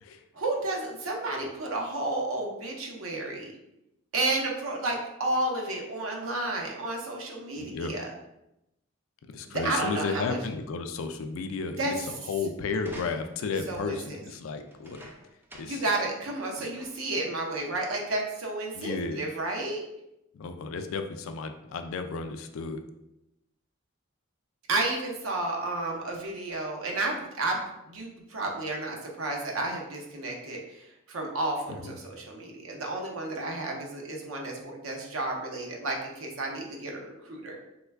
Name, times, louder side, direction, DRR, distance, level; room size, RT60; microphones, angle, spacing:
voice 1, 0.3-3.5 4.1-8.1 9.4-10.4 11.8-11.9 13.7-14.2 15.6-19.8 24.7-37.6, right 2 dB, 90° right, 0 dB, 0.7 m, -32 dB
voice 2, 7.6-7.9 9.3-15.1 15.5-15.8 16.6-16.7 18.7-19.2 20.3-22.8 31.8-31.9, left 4 dB, 80° left, 7 dB, 0.3 m, -33 dB
sound 1, 12.8-13.6 14.7-15.9 16.3-16.4 16.7-17.2 18.0-18.1, right 1 dB, 10° right, 0.3 m, -48 dB
3.1 x 2.2 x 3.4 m, 0.87 s
head